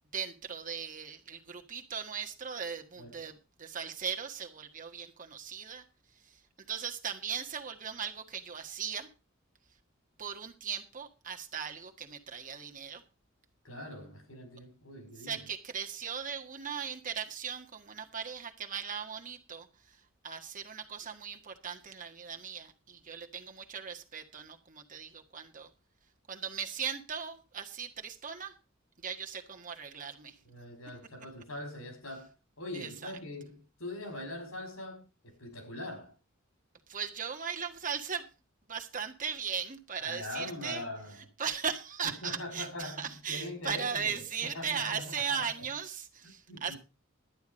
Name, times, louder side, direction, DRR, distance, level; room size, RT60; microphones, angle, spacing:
voice 1, 0.0-5.9 6.2-6.4 6.7-9.1 10.2-13.0 15.2-20.0 20.2-25.7 26.3-28.5 29.0-30.4 32.7-33.1 36.9-38.3 38.7-40.8 41.4-46.7, right 7 dB, 40° right, 1.6 m, -38 dB
voice 2, 13.6-15.5 30.5-36.1 40.0-41.3 42.0-45.7 46.5-46.8, left 1 dB, 90° left, 5.1 m, -42 dB
11.5 x 9.5 x 5.2 m
head